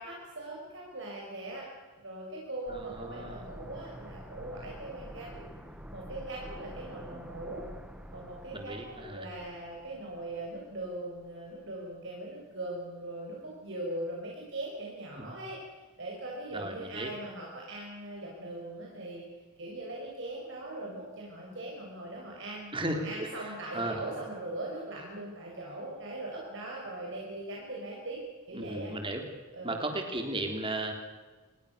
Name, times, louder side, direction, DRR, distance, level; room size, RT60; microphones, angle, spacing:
voice 1, 0.0-1.7 2.0-5.5 5.9-7.7 8.1-15.6 16.0-19.2 19.6-28.2 28.5-28.9 29.5-29.9, right 1 dB, 55° right, -2 dB, 5.9 m, -40 dB
sound 1, 2.7-11.4 11.7-11.8, equal, 5° right, 1.8 m, -48 dB
voice 2, 2.7-3.4 7.1-7.2 8.5-9.3 15.2-15.3 16.5-17.1 22.7-24.0 28.5-29.2 29.6-30.9, right 1 dB, 25° right, 4 dB, 3.6 m, -35 dB
27.5 x 21.0 x 6.9 m, 1.3 s
head